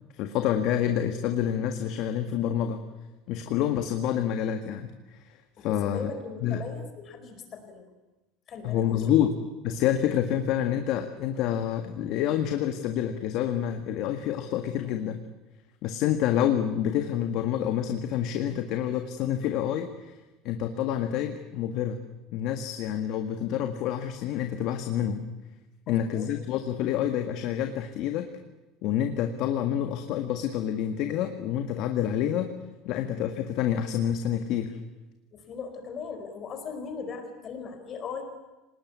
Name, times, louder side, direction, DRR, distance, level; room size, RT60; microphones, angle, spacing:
voice 1, 0.2-2.8 3.3-4.9 5.6-6.1 6.4-6.6 8.6-9.3 9.6-15.2 15.8-20.2 20.4-22.0 22.3-25.2 25.9-28.3 28.8-32.5 32.8-34.8, left 10 dB, 55° left, 6 dB, 1.7 m, -28 dB
voice 2, 5.6-7.9 8.5-9.1 25.9-26.3 35.3-38.2, left 5 dB, 30° left, 6 dB, 4.8 m, -39 dB
25.0 x 20.0 x 9.5 m, 1.1 s
cardioid pair, 155°, 0 cm